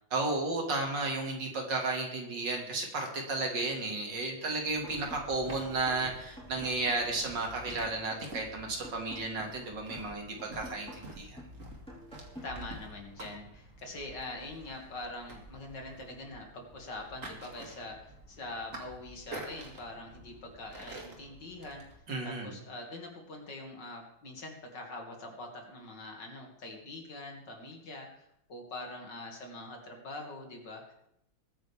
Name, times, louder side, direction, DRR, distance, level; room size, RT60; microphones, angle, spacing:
voice 1, 0.1-11.4 22.1-22.5, right 3 dB, 60° right, 1 dB, 2.8 m, -33 dB
sound 1, 4.7-22.0, right 1 dB, 40° right, 2.4 m, -49 dB
sound 2, 4.8-12.8, equal, 5° left, 4.1 m, -49 dB
voice 2, 12.4-30.9, left 2 dB, 60° left, 1 dB, 2.8 m, -44 dB
21.0 x 9.3 x 3.5 m, 0.78 s
omnidirectional pair, 2.2 m